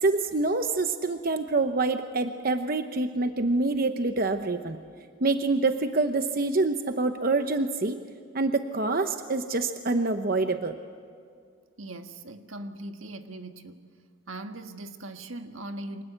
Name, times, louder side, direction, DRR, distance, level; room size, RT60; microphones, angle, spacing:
voice 1, 0.0-4.8 5.2-8.0 8.3-10.8, right 3 dB, 45° right, 7 dB, 0.9 m, -26 dB
voice 2, 11.8-13.9 14.3-16.0, right 1 dB, 75° right, 6 dB, 1.6 m, -40 dB
29.0 x 25.5 x 8.0 m, 2.2 s
head